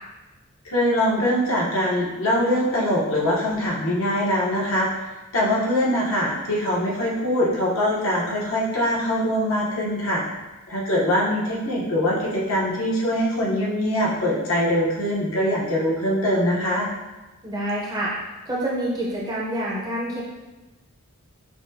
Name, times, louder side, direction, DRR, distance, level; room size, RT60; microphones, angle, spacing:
voice 1, 0.6-4.9 5.3-10.2 10.7-16.9, equal, 60° left, -5 dB, 0.9 m, -23 dB
voice 2, 17.4-18.1 18.5-20.2, right 1 dB, 15° right, -6 dB, 0.7 m, -27 dB
5.9 x 2.1 x 2.7 m, 1.1 s
head